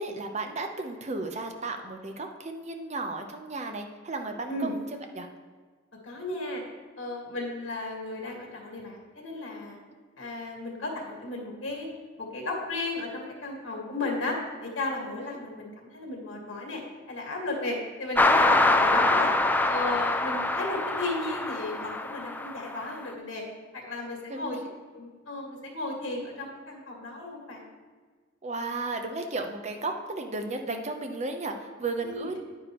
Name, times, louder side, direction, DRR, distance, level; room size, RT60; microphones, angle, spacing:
voice 1, 0.0-4.8 5.1-5.3 15.2-15.4 18.5-19.2 24.3-24.7 28.4-32.4, right 3 dB, 35° right, 5 dB, 0.8 m, -34 dB
voice 2, 6.0-6.6 7.0-9.8 10.2-11.9 12.2-16.8 17.1-19.3 19.7-23.4 23.7-24.6 24.9-27.6 32.0-32.4, left 2 dB, 75° left, -1 dB, 2.0 m, -34 dB
sound 1, 18.1-23.0, left 2 dB, 10° left, 0.4 m, -24 dB
9.6 x 9.2 x 3.1 m, 1.5 s
head